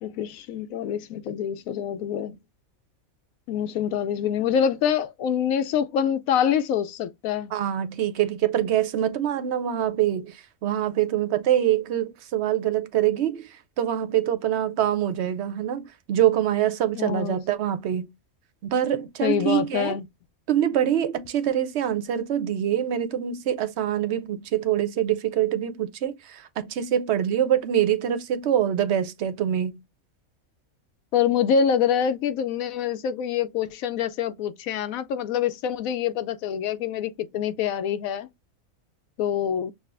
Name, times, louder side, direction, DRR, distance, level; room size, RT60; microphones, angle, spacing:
voice 1, 0.0-2.4 3.5-7.5 16.9-17.4 19.2-20.0 31.1-38.3 39.2-39.7, left 8 dB, 75° left, 1.0 m, -25 dB
voice 2, 7.5-18.1 18.6-20.0 20.5-29.8, right 11 dB, 65° right, 0.7 m, -25 dB
6.3 x 2.2 x 2.4 m
omnidirectional pair, 1.5 m